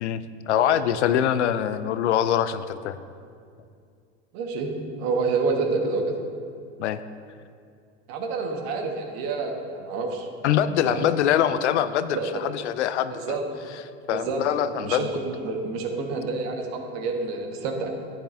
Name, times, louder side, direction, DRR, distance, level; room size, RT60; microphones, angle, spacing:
voice 1, 0.0-3.0 6.8-7.0 10.4-13.4 14.1-15.1, left 10 dB, 90° left, 13 dB, 0.5 m, -24 dB
voice 2, 4.3-6.2 8.1-10.3 10.8-11.1 12.1-12.5 13.1-13.4 14.1-14.4 14.8-17.9, right 4 dB, 60° right, 3 dB, 1.5 m, -28 dB
10.5 x 9.8 x 2.6 m, 2.3 s
hypercardioid pair, 95°, 34 cm